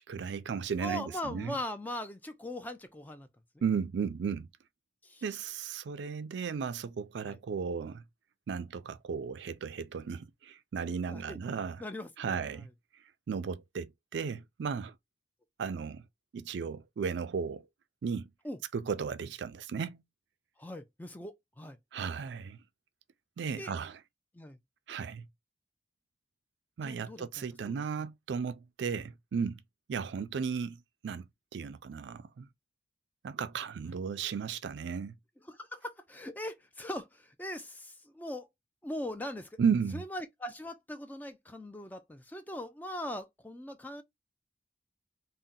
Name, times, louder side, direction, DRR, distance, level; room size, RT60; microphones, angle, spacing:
voice 1, 0.0-1.6 3.6-4.5 5.2-8.0 8.5-11.8 12.2-12.7 13.3-14.9 15.6-16.0 16.3-17.6 18.0-18.3 18.7-20.0 21.9-22.6 23.4-24.0 24.9-25.3 26.8-29.6 29.9-31.3 31.5-32.5 33.2-35.1 39.6-40.0, right 6 dB, 80° right, 0.4 m, -35 dB
voice 2, 0.8-3.3 5.0-5.2 7.2-7.4 11.1-11.4 11.8-12.5 18.4-18.6 20.6-21.8 23.6-23.7 24.3-24.6 26.8-27.3 27.6-27.8 35.5-38.5 38.8-39.5 39.9-44.0, left 1 dB, 10° left, 0.3 m, -40 dB
2.7 x 2.1 x 3.7 m
head